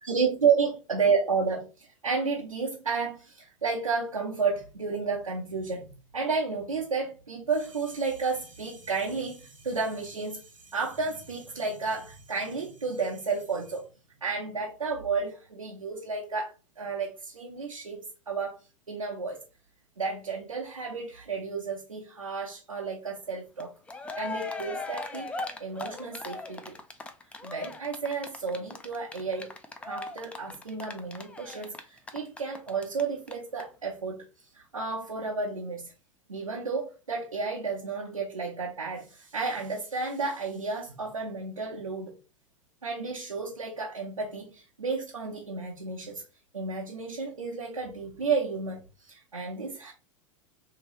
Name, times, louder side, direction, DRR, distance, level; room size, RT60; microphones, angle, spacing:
voice 1, 0.0-13.9 14.2-18.0 18.3-18.6 18.9-19.4 20.0-23.7 24.2-26.7 27.4-29.5 29.8-34.2 34.5-35.9 36.3-42.1 42.8-46.2 46.5-49.9, right 4 dB, 85° right, 0.7 m, -32 dB
Cheering, 23.6-23.7 23.9-33.0 33.3-33.4 33.6-33.7, left 3 dB, 5° left, 0.3 m, -38 dB
3.0 x 2.9 x 2.8 m
figure-of-eight pair, 90°, 17 cm